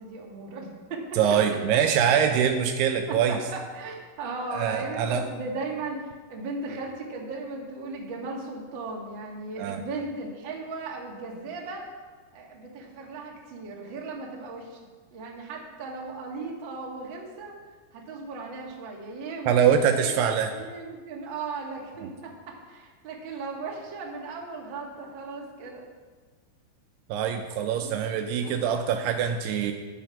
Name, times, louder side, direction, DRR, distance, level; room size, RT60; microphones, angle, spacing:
voice 1, 0.0-1.0 1.3-1.4 1.7-1.8 3.1-11.8 12.3-14.8 15.1-17.6 17.9-20.2 20.5-25.8 27.8-28.0 28.4-29.0, right 3 dB, 40° right, -1 dB, 1.8 m, -37 dB
voice 2, 1.2-3.4 4.5-5.3 9.6-9.8 19.5-20.5 27.1-29.7, right 8 dB, 80° right, 5 dB, 2.6 m, -24 dB
11.5 x 9.4 x 5.9 m, 1.4 s
omnidirectional pair, 4.9 m